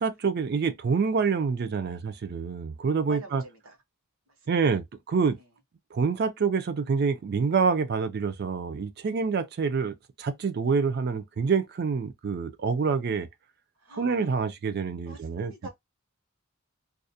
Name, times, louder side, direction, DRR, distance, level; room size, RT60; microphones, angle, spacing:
voice 1, 0.0-3.4 4.5-5.4 5.9-13.3 14.0-15.7, right 5 dB, 50° right, 0.4 m, -27 dB
voice 2, 3.0-3.8 4.3-4.8 5.4-5.5 13.8-14.4 15.1-15.7, right 2 dB, 75° right, 0.9 m, -45 dB
2.4 x 2.1 x 2.6 m
head